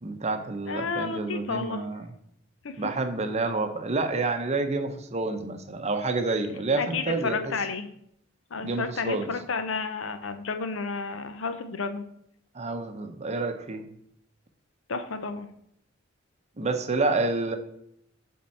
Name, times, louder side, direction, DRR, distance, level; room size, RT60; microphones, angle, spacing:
voice 1, 0.0-2.0 2.8-7.5 8.6-9.3 12.5-13.9 16.6-17.6, right 3 dB, 35° right, 7 dB, 0.7 m, -28 dB
voice 2, 0.7-1.8 2.6-2.8 6.8-7.9 8.5-12.0 14.9-15.5, left 4 dB, 80° left, 9 dB, 0.7 m, -31 dB
8.5 x 3.7 x 4.2 m, 0.72 s
head